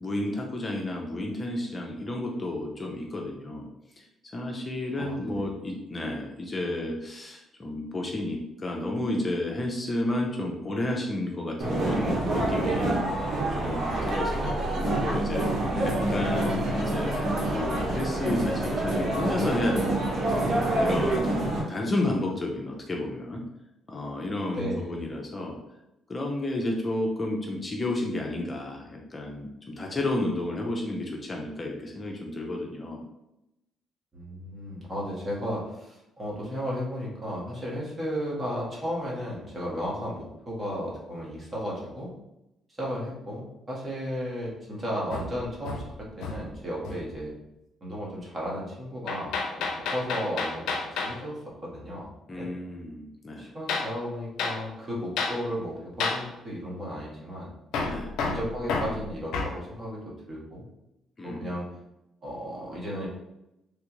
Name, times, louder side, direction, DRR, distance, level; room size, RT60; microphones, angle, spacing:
voice 1, 0.0-3.7 4.0-4.1 4.3-13.0 13.5-21.4 21.7-23.4 23.9-25.6 26.1-33.0 52.3-53.5 57.8-58.1 61.2-61.5, left 1 dB, 30° left, 0 dB, 0.6 m, -31 dB
voice 2, 5.0-5.3 14.4-14.7 15.7-15.9 24.5-25.0 34.1-42.1 42.8-47.3 47.8-52.1 52.3-52.5 53.3-57.5 58.2-60.6 61.2-61.7 62.2-63.1, equal, 30° right, -5 dB, 1.5 m, -34 dB
sound 1, 11.6-21.6, right 1 dB, 60° right, 1.0 m, -27 dB
Hammer, 45.1-46.6 46.8-47.2 49.1-51.2 53.7-53.9 54.4-54.6 55.2-55.4 56.0-56.3 57.7-59.6, left 4 dB, 80° left, 0.5 m, -30 dB
3.4 x 2.4 x 3.0 m, 0.89 s
supercardioid pair, 70°, 0 cm